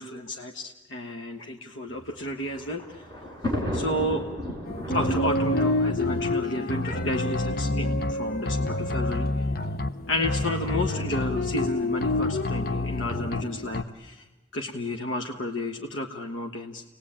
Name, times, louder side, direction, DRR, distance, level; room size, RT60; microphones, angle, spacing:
voice 1, 0.0-3.0 3.7-4.2 4.9-9.5 10.1-14.3 14.5-16.8, left 1 dB, 80° left, 3 dB, 1.3 m, -31 dB
Thunder, 2.0-7.3 8.1-8.2 8.5-8.6 9.6-9.9, left 1 dB, 20° left, 6.0 m, -34 dB
sound 1, 4.7-13.8, left 2 dB, 50° left, 0.9 m, -27 dB
30.0 x 20.0 x 8.8 m, 1.2 s
head